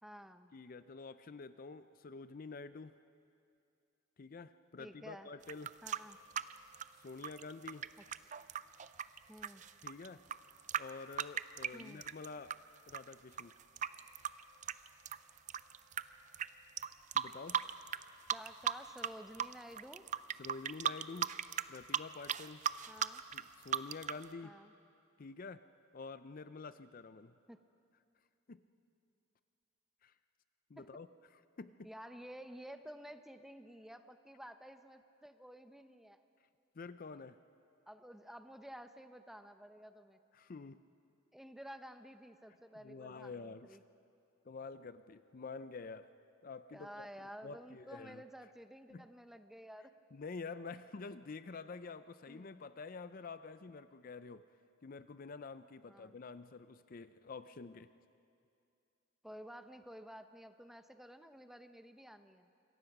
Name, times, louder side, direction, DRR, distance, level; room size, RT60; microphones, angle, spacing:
voice 1, 0.0-0.5 4.8-5.3 5.8-6.2 8.0-8.1 9.3-9.6 11.7-12.0 18.3-20.0 22.9-23.2 24.4-24.7 27.5-27.6 30.8-30.9 31.8-36.2 37.9-40.2 41.3-43.8 46.7-49.9 52.3-52.6 55.8-56.2 59.2-62.5, equal, ahead, 8 dB, 0.7 m, -52 dB
voice 2, 0.5-3.0 4.2-5.8 6.9-7.9 9.8-10.2 10.8-12.5 12.9-13.6 17.1-17.6 20.4-21.3 21.7-22.6 23.3-24.6 25.2-25.6 25.9-27.3 28.5-28.6 30.0-30.1 30.7-31.1 31.6-31.9 36.8-37.4 40.3-40.8 42.8-43.8 44.5-46.1 46.4-47.1 47.4-48.2 48.9-49.0 50.1-54.5 54.8-57.9, left 4 dB, 45° left, 12 dB, 0.5 m, -48 dB
sound 1, 5.4-12.6 12.9-16.0 16.3-16.5 16.8-18.0 18.3-19.1 19.3-24.2, right 9 dB, 35° right, 0.4 m, -37 dB
27.0 x 22.5 x 6.0 m, 2.6 s
head